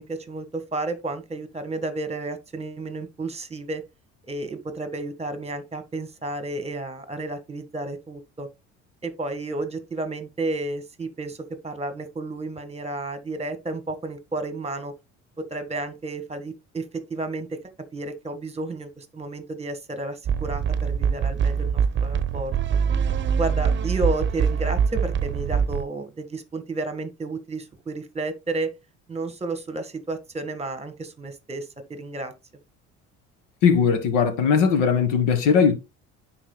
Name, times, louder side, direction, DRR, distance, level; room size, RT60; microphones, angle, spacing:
voice 1, 0.0-3.8 4.3-8.5 9.0-11.4 11.6-14.9 15.4-17.6 17.9-22.5 23.4-28.7 29.1-32.3, right 2 dB, 20° right, 1.5 m, -32 dB
sound 1, 20.2-25.8, right 7 dB, 35° right, 0.8 m, -23 dB
voice 2, 33.6-35.7, left 6 dB, 80° left, 1.6 m, -19 dB
10.0 x 4.4 x 2.2 m
supercardioid pair, 85°, 32 cm